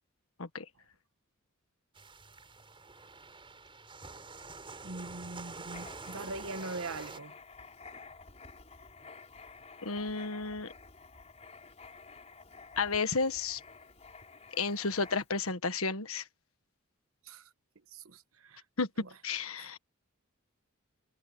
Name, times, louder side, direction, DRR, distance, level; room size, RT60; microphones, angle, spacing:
sound 1, 2.0-7.2, right 3 dB, 25° right, 6.0 m, -47 dB
voice 1, 4.8-7.3 17.2-17.5 17.9-18.6 19.0-19.1 19.6-19.8, right 3 dB, 75° right, 1.2 m, -42 dB
Writing, 5.7-15.5, left 4 dB, 30° left, 4.7 m, -52 dB
voice 2, 9.8-10.7 12.8-13.6 14.6-16.2 18.8-18.9 19.2-19.8, left 4 dB, 75° left, 1.5 m, -32 dB
head